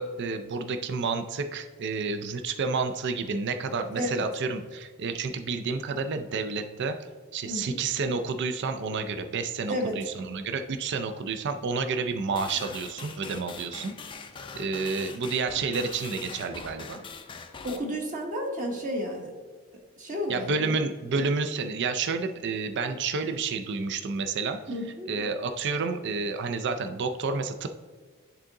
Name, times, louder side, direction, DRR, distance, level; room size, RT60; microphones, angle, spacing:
voice 1, 0.0-7.0 7.3-13.9 14.5-17.0 20.3-24.6 25.1-27.7, right 4 dB, 50° right, 7 dB, 0.4 m, -30 dB
voice 2, 3.9-4.3 7.4-7.8 9.7-10.0 17.6-19.3 20.0-20.7 24.7-25.1, equal, 35° right, 1 dB, 1.0 m, -32 dB
sound 1, 12.3-17.8, left 5 dB, 20° left, 0.4 m, -42 dB
10.5 x 3.7 x 3.7 m, 1.5 s
head